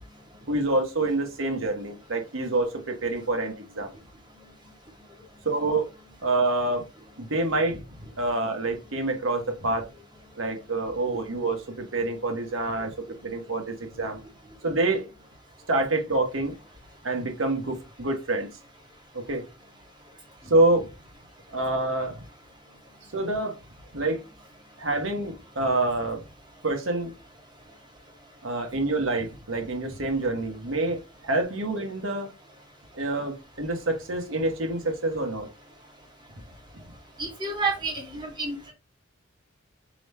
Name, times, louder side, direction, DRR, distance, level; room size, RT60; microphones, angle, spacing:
voice 1, 0.5-3.9 5.4-5.9 6.2-6.8 7.2-7.8 8.2-9.9 10.4-12.9 13.2-14.2 14.6-15.1 15.7-16.5 17.0-18.5 19.1-19.4 20.4-20.9 21.5-22.2 23.1-23.6 23.9-24.2 24.8-26.2 26.6-27.1 28.4-32.3 32.9-35.5, right 2 dB, 80° right, 4 dB, 1.1 m, -27 dB
voice 2, 37.2-38.7, right 3 dB, 20° right, -2 dB, 1.6 m, -30 dB
3.4 x 3.0 x 4.1 m, 0.28 s
head